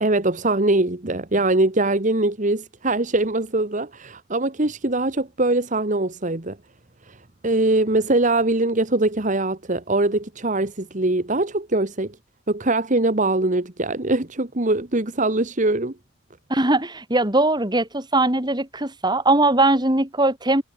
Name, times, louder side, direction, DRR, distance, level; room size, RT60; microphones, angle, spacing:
voice 1, 0.0-6.6 7.1-7.2 7.4-12.2 12.5-15.9, right 2 dB, 40° right, 1.5 m, -22 dB
voice 2, 16.5-20.6, right 2 dB, 20° right, 3.6 m, -20 dB
head